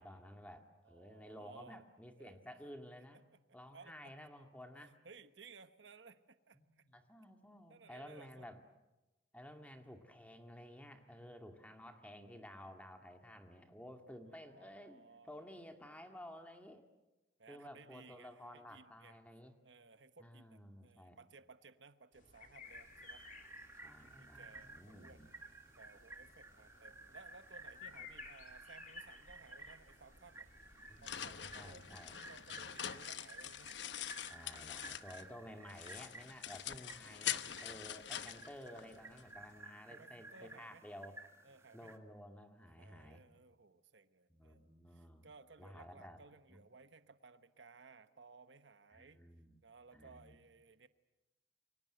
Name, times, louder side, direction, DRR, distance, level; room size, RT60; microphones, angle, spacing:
voice 1, 0.0-3.2 3.5-5.0 6.5-8.6 9.3-16.8 17.5-19.6 20.2-21.2 23.8-25.3 27.9-28.0 30.8-32.2 34.3-41.2 41.7-43.2 44.3-45.3 45.6-46.2 46.5-46.6 48.9-49.6 49.9-50.3, equal, 10° left, 5 dB, 2.2 m, -53 dB
voice 2, 0.8-1.9 2.2-2.4 3.5-3.9 4.8-6.8 7.7-8.5 9.7-9.9 14.2-15.5 15.8-16.2 17.4-19.2 19.6-23.3 24.0-25.2 25.8-30.6 31.0-33.7 34.0-34.4 39.9-40.8 41.4-42.0 42.8-49.2 49.6-50.9, right 4 dB, 80° right, 11 dB, 1.1 m, -60 dB
sound 1, 22.1-32.1, left 6 dB, 45° left, 2.3 m, -59 dB
sound 2, 22.6-42.0, right 2 dB, 15° right, 1.6 m, -55 dB
sound 3, 30.6-35.4 35.7-39.2, left 10 dB, 75° left, 1.0 m, -44 dB
29.0 x 24.0 x 7.9 m, 1.0 s
head